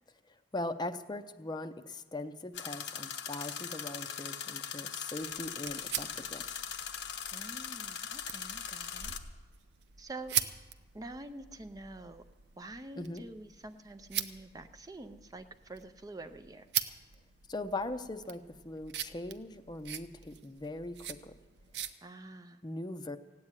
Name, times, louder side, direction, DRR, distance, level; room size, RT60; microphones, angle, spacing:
voice 1, 0.5-6.6 13.0-13.2 17.5-21.3 22.6-23.2, left 2 dB, 25° left, 10 dB, 0.6 m, -40 dB
sound 1, 2.5-9.2, left 8 dB, 85° left, 1.0 m, -40 dB
sound 2, 5.2-21.9, right 9 dB, 75° right, 0.7 m, -42 dB
voice 2, 7.3-9.2 10.0-10.4 10.9-12.2 12.6-16.7 22.0-22.6, right 2 dB, 20° right, 9 dB, 0.5 m, -47 dB
16.0 x 8.7 x 9.7 m, 1.3 s
head